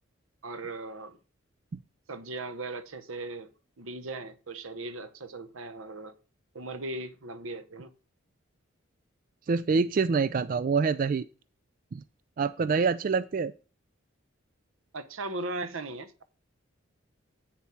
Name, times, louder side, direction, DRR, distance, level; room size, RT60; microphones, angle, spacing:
voice 1, 0.4-1.2 2.1-3.5 3.8-6.1 6.5-7.9 14.9-16.2, right 2 dB, 85° right, 0.9 m, -38 dB
voice 2, 9.5-11.3 11.9-12.0 12.4-13.5, right 5 dB, 45° right, 0.3 m, -26 dB
8.7 x 7.1 x 4.4 m
head